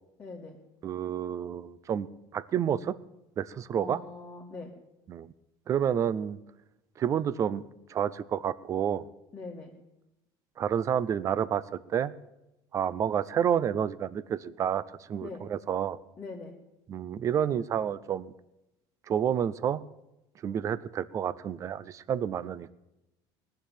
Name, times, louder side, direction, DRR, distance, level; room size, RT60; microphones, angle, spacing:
voice 1, 0.2-0.6 3.8-4.7 9.3-9.7 15.2-15.4 16.2-16.5, left 3 dB, 20° left, -3 dB, 1.9 m, -42 dB
voice 2, 0.8-3.0 3.4-4.0 5.1-5.3 5.7-6.4 7.0-7.6 7.9-9.1 10.6-12.1 12.7-16.0 16.9-18.3 19.1-19.8 20.4-22.7, right 9 dB, 30° right, 18 dB, 0.5 m, -29 dB
19.5 x 6.8 x 9.2 m, 0.91 s
cardioid pair, 160°, 11 cm